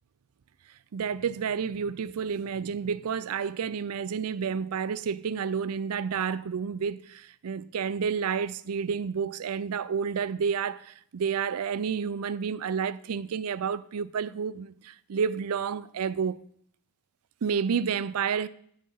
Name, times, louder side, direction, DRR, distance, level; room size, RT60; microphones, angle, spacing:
voice 1, 0.9-16.4 17.4-18.5, right 6 dB, 85° right, 0.4 m, -30 dB
9.8 x 6.5 x 5.6 m
head